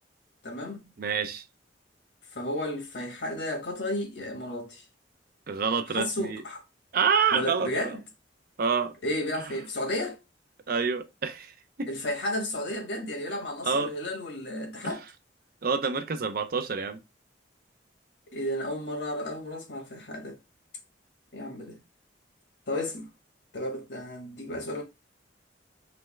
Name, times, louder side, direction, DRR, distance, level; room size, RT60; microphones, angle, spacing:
voice 1, 0.4-0.8 2.3-4.8 5.9-6.6 7.3-8.0 9.0-10.2 11.9-15.0 18.3-20.4 21.3-21.8 22.7-23.1 23.5-24.8, left 1 dB, 70° left, 1.3 m, -33 dB
voice 2, 1.0-1.4 5.5-6.4 6.9-8.0 8.6-8.9 10.7-11.5 11.8-11.9 13.6-13.9 15.6-17.0, right 6 dB, 55° right, 0.5 m, -27 dB
3.4 x 3.1 x 3.1 m
head